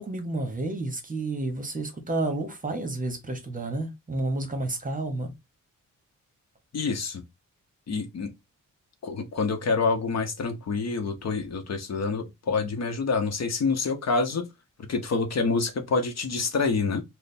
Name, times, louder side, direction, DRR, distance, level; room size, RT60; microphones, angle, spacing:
voice 1, 0.0-5.3, right 2 dB, 25° right, 0.9 m, -30 dB
voice 2, 6.7-7.2 7.9-8.3 9.0-14.5 14.9-17.0, left 4 dB, 55° left, 0.8 m, -27 dB
3.2 x 2.1 x 4.1 m
wide cardioid pair, 105°, 32 cm